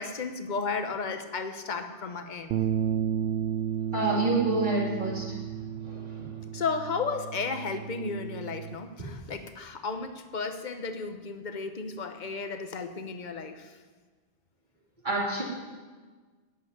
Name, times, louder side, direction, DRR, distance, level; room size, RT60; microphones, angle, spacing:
voice 1, 0.0-2.6 6.5-13.7, left 4 dB, 50° left, 7 dB, 1.1 m, -34 dB
sound 1, 2.5-8.8, right 9 dB, 90° right, 0.9 m, -33 dB
voice 2, 3.9-5.3 5.8-6.3 9.0-9.1 15.0-15.4, right 2 dB, 45° right, -6 dB, 3.0 m, -28 dB
11.0 x 8.3 x 9.5 m, 1.4 s
omnidirectional pair, 1.1 m